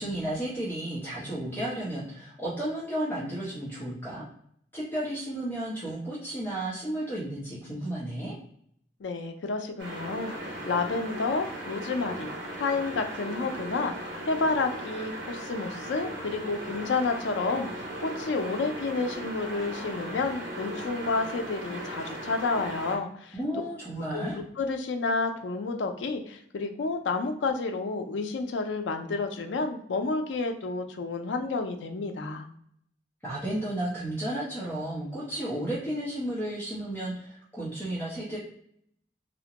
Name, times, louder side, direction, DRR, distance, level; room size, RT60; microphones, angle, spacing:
voice 1, 0.0-4.2 4.7-8.3 23.3-24.4 33.2-38.4, right 1 dB, 10° left, -8 dB, 0.7 m, -33 dB
voice 2, 9.0-23.4 24.1-32.5, left 3 dB, 90° left, 5 dB, 0.4 m, -30 dB
sound 1, 9.8-23.0, right 1 dB, 85° right, 0.8 m, -38 dB
2.4 x 2.1 x 2.9 m, 0.68 s
head